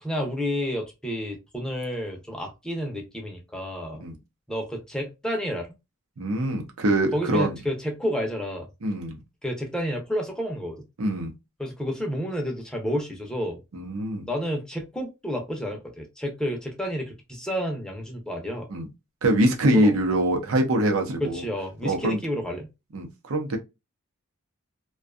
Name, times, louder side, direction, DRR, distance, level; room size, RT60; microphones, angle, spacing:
voice 1, 0.0-4.0 4.5-5.7 7.1-8.7 9.4-10.8 11.6-13.6 14.3-18.7 19.7-19.9 21.2-22.7, equal, 5° left, 0.5 m, -30 dB
voice 2, 6.2-7.6 8.8-9.2 11.0-11.3 13.7-14.3 18.7-18.9 19.2-21.4 21.8-22.2 22.9-23.6, right 1 dB, 85° right, 0.7 m, -24 dB
2.5 x 2.2 x 2.3 m
head